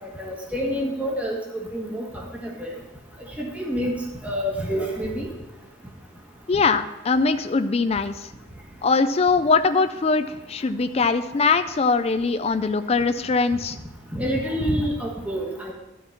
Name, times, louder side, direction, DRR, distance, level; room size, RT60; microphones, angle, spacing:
voice 1, 0.0-1.4 1.7-2.7 3.4-3.9 4.2-5.3 14.1-15.7, equal, 5° right, -2 dB, 1.3 m, -27 dB
voice 2, 6.5-8.3 8.8-13.8, left 4 dB, 30° left, 10 dB, 0.4 m, -22 dB
13.0 x 4.6 x 5.7 m, 0.99 s
head